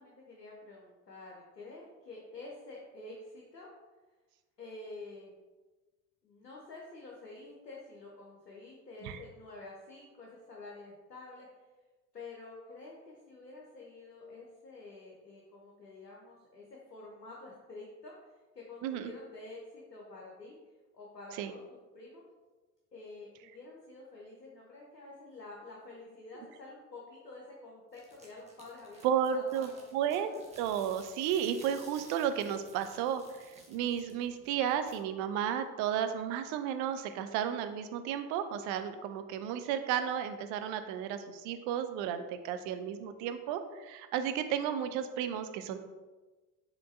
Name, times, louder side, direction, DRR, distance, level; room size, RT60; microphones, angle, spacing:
voice 1, 0.0-3.7 4.6-5.3 6.2-11.5 12.1-20.6 20.9-21.6 21.9-22.2 22.9-29.1 29.3-30.4, left 2 dB, 90° left, -3 dB, 0.7 m, -49 dB
sound 1, 27.9-35.0, right 2 dB, 15° right, 0.9 m, -56 dB
voice 2, 29.0-30.3 30.6-33.2 33.7-45.8, right 9 dB, 40° right, 9 dB, 0.4 m, -33 dB
4.5 x 3.6 x 2.5 m, 1.2 s
figure-of-eight pair, 65°, 48 cm